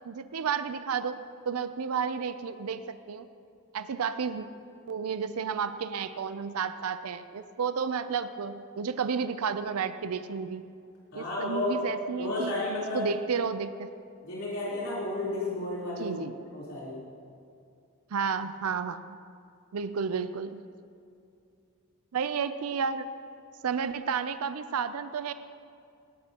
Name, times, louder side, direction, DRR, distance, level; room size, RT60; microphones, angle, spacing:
voice 1, 0.0-1.2 1.5-3.3 3.7-4.5 4.9-10.6 11.1-12.5 12.9-13.9 16.0-16.4 18.1-19.2 19.7-20.6 22.1-23.1 23.6-25.3, right 6 dB, 80° right, 11 dB, 0.5 m, -31 dB
voice 2, 11.1-11.8 12.2-13.1 14.2-16.2 16.5-16.9, left 2 dB, 70° left, -8 dB, 3.7 m, -32 dB
17.5 x 13.0 x 2.9 m, 2.4 s
head